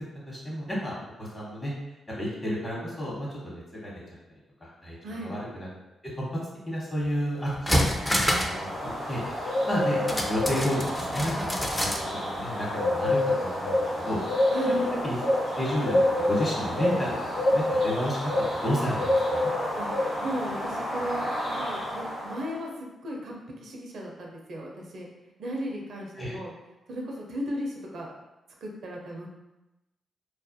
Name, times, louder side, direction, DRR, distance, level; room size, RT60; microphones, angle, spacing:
voice 1, 0.3-1.7 2.2-3.9 4.6-5.7 6.1-6.2 6.7-8.3 8.6-8.7 9.1-11.9 12.2-14.2 14.7-14.8 15.0-17.2 17.4-18.2 18.6-19.5 26.2-26.3, equal, 30° left, -6 dB, 1.0 m, -31 dB
sound 1, 7.0-7.1 7.5-8.6 8.9-9.0 10.1-12.1 12.4-12.5, equal, 15° left, 0.4 m, -27 dB
sound 2, 7.9-22.4, left 1 dB, 85° left, 1.2 m, -28 dB
voice 2, 19.7-25.1 25.4-26.5 26.9-28.1 28.6-29.3, equal, 70° right, -1 dB, 0.5 m, -36 dB
2.3 x 2.1 x 2.6 m, 0.97 s
hypercardioid pair, 40°, 0 cm